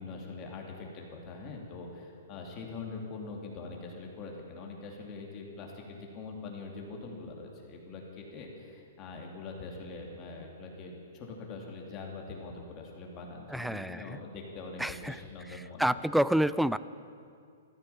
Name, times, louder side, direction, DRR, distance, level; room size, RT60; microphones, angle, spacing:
voice 1, 0.0-16.0, left 3 dB, 25° left, 0 dB, 2.6 m, -43 dB
voice 2, 13.5-14.2 14.8-15.2 15.8-16.8, equal, ahead, 16 dB, 0.3 m, -28 dB
14.5 x 14.0 x 7.0 m, 2.3 s
hypercardioid pair, 155°, 0 cm